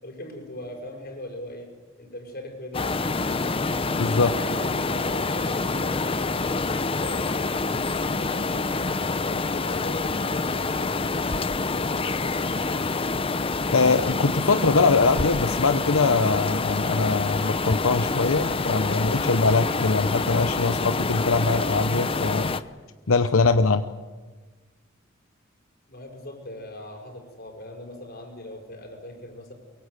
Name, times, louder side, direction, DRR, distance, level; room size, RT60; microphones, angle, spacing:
voice 1, 0.0-3.7 4.1-8.9 9.2-10.9 11.4-12.8 25.9-29.5, left 1 dB, 50° left, 3 dB, 5.8 m, -40 dB
sound 1, 2.7-22.6, left 3 dB, 25° left, 0.7 m, -27 dB
voice 2, 4.0-4.3 13.7-22.5 23.1-23.9, left 3 dB, 85° left, 9 dB, 0.9 m, -22 dB
23.5 x 23.5 x 8.2 m, 1.4 s
head